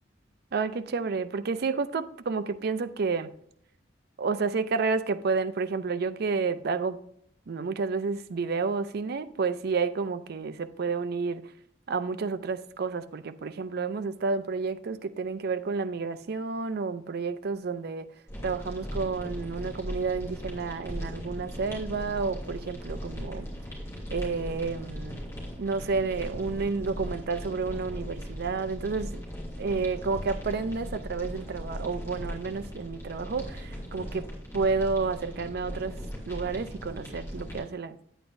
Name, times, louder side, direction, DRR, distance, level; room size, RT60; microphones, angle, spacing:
voice 1, 0.5-3.3 4.2-7.0 7.5-11.4 11.9-18.1 18.4-23.5 24.1-25.2 25.6-29.2 29.6-34.3 34.5-36.0 36.3-38.0, right 4 dB, 60° right, 0.5 m, -30 dB
sound 1, 18.3-37.6, equal, 15° left, 3.0 m, -38 dB
9.0 x 8.9 x 2.6 m
head